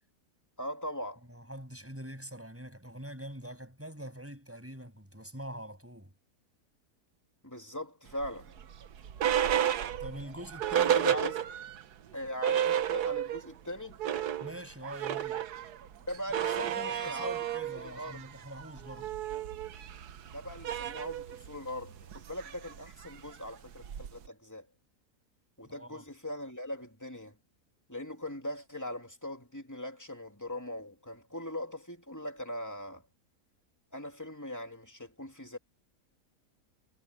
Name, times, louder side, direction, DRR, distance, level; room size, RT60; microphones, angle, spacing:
voice 1, 0.6-1.2 7.4-8.7 10.9-11.4 12.1-14.0 16.1-17.3 17.8-18.2 20.3-24.7 25.6-27.4 27.9-33.0 33.9-35.6, left 1 dB, 10° left, 2.9 m, -40 dB
voice 2, 1.3-6.1 10.0-11.2 14.4-15.4 16.6-19.1 25.6-26.0, right 1 dB, 10° right, 7.6 m, -44 dB
sound 1, 8.2-11.8 12.1-12.2 12.4-13.5 13.8-24.3, right 10 dB, 85° right, 1.5 m, -32 dB
omnidirectional pair, 1.6 m